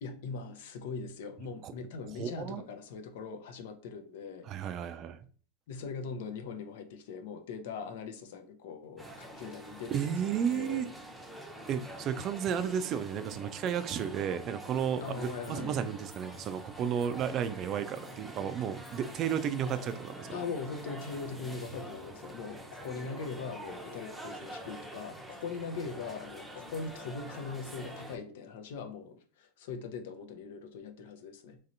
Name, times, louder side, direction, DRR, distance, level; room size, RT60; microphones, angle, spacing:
voice 1, 0.0-4.5 5.7-10.9 15.0-15.8 20.3-31.6, left 5 dB, 70° left, 6 dB, 0.6 m, -41 dB
voice 2, 2.2-2.6 4.5-5.3 9.9-10.9 11.7-20.4, right 8 dB, 40° right, 11 dB, 0.4 m, -33 dB
sound 1, 9.0-28.2, right 1 dB, ahead, 0.7 m, -46 dB
3.1 x 2.8 x 2.6 m, 0.42 s
hypercardioid pair, 105°, 0 cm